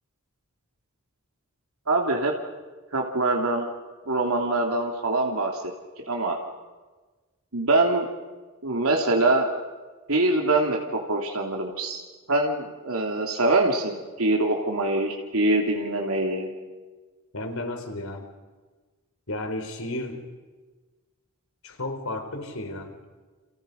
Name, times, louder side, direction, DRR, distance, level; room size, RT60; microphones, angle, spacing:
voice 1, 1.9-2.3 2.9-3.7 4.1-5.7 6.1-6.4 7.5-8.1 8.6-9.5 10.1-12.0 12.3-16.5, right 2 dB, 90° right, 0 dB, 3.0 m, -24 dB
voice 2, 17.3-18.3 19.3-20.2 21.6-23.0, left 1 dB, 80° left, 5 dB, 3.9 m, -33 dB
29.5 x 29.5 x 5.4 m, 1.3 s
head